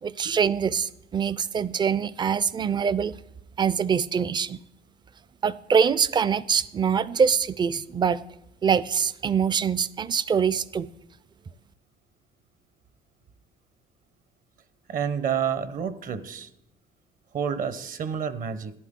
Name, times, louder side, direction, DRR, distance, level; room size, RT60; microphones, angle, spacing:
voice 1, 0.0-3.2 3.6-4.6 5.4-8.2 8.6-10.9, right 7 dB, 25° right, 0.4 m, -24 dB
voice 2, 14.9-16.5 17.3-18.7, right 7 dB, 55° right, 1.0 m, -29 dB
14.0 x 11.0 x 3.7 m
cardioid pair, 110°, 17 cm